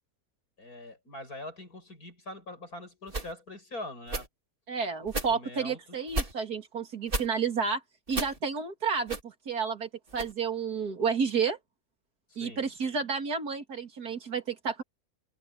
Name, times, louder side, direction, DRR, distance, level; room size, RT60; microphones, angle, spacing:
voice 1, 0.6-4.3 5.1-5.8 12.3-12.7, left 1 dB, 75° left, 7.1 m, -43 dB
sound 1, 3.1-3.3 4.1-4.3 5.1-5.3 6.1-6.3 7.1-7.3 8.1-8.4 9.1-9.2 10.1-10.3, right 2 dB, 35° right, 2.9 m, -32 dB
voice 2, 4.7-7.8 8.1-11.6 12.4-14.8, right 5 dB, 85° right, 3.0 m, -31 dB
omnidirectional pair, 1.6 m